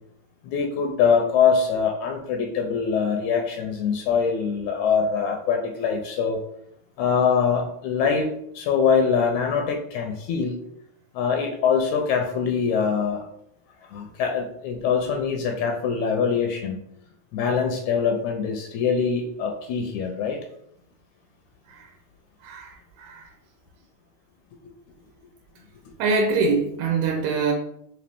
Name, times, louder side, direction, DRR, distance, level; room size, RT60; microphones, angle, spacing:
voice 1, 0.4-6.4 7.0-8.3 8.6-10.6 11.1-13.2 13.9-16.8 17.3-20.4, left 6 dB, 80° left, 3 dB, 1.8 m, -23 dB
voice 2, 22.4-23.3 26.0-27.5, right 4 dB, 80° right, 2 dB, 2.0 m, -24 dB
5.0 x 2.6 x 3.4 m, 0.73 s
omnidirectional pair, 3.4 m